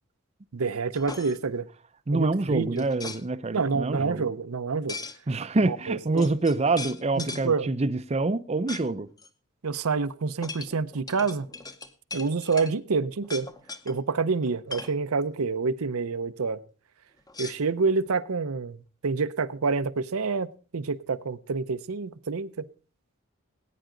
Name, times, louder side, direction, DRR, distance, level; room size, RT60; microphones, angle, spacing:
voice 1, 0.5-1.7 2.1-2.9 3.5-5.0 5.6-6.3 7.2-7.7 9.6-11.5 12.1-13.5 13.9-16.6 17.4-18.8 19.0-20.5 20.7-22.6, right 4 dB, 90° right, 0.7 m, -27 dB
sound 1, 0.9-1.4 2.8-3.2 4.9-5.2 5.9-6.0 6.2-7.5 8.7-8.9 9.2-9.3 10.4-12.7 13.2-13.9 14.4-15.0 17.3-18.1, left 3 dB, 15° left, 0.8 m, -39 dB
voice 2, 2.1-4.2 5.3-9.1, right 3 dB, 30° right, 0.5 m, -26 dB
19.0 x 9.3 x 3.8 m
head